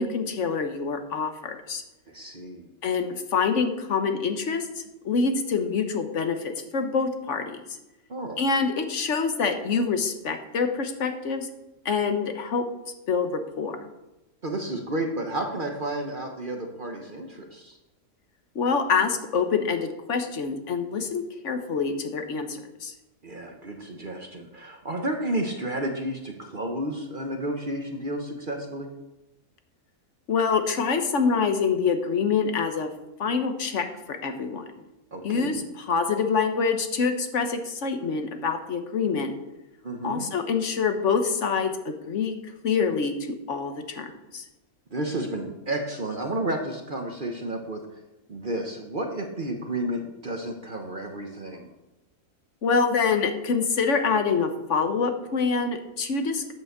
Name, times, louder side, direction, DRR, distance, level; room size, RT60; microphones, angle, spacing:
voice 1, 0.0-1.8 2.8-7.6 8.4-11.5 11.8-12.7 13.1-13.9 18.5-22.9 30.3-32.9 33.2-34.7 35.2-39.3 40.0-42.4 42.6-44.4 52.6-56.5, left 5 dB, 55° left, 7 dB, 1.4 m, -26 dB
voice 2, 2.1-2.7 8.1-8.4 14.4-17.8 23.2-28.9 35.1-35.5 39.8-40.3 44.9-47.8 48.3-51.7, right 1 dB, 40° right, 3 dB, 1.1 m, -31 dB
8.6 x 6.9 x 6.7 m, 0.98 s
omnidirectional pair, 1.5 m